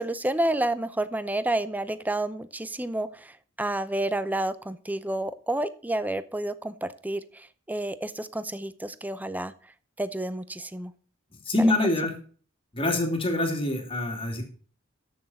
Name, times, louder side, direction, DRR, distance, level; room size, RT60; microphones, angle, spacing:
voice 1, 0.0-9.5 10.0-10.9, right 1 dB, 10° right, 14 dB, 0.6 m, -30 dB
voice 2, 11.3-12.2 12.7-14.4, left 2 dB, 25° left, 3 dB, 2.7 m, -25 dB
13.5 x 6.4 x 4.2 m, 0.43 s
head